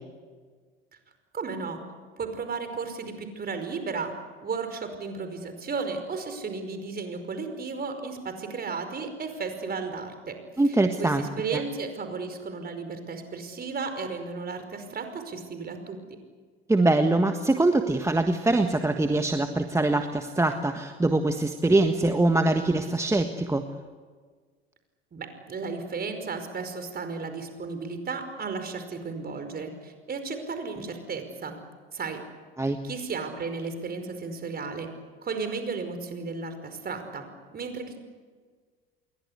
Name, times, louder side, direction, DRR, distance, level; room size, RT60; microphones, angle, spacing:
voice 1, 1.3-1.8 2.2-4.1 4.4-10.4 11.0-16.0 25.1-31.6 31.9-32.2 32.8-34.9 35.2-38.0, right 4 dB, 30° right, 7 dB, 5.2 m, -34 dB
voice 2, 10.6-11.6 16.7-23.7 32.6-32.8, right 2 dB, 10° right, 6 dB, 1.5 m, -23 dB
28.5 x 22.5 x 8.3 m, 1.5 s
figure-of-eight pair, 65°, 31 cm